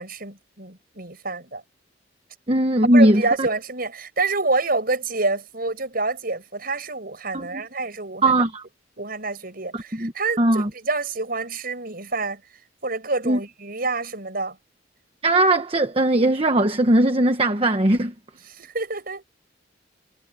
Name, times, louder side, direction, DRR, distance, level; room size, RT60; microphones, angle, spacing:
voice 1, 0.0-1.6 2.9-8.4 9.0-12.4 12.8-14.6 18.5-19.2, right 3 dB, 50° right, 7.4 m, -27 dB
voice 2, 2.5-3.5 7.3-7.6 8.2-8.6 9.7-10.1 10.4-10.7 13.2-13.4 15.2-18.1, right 1 dB, 30° right, 1.1 m, -19 dB
head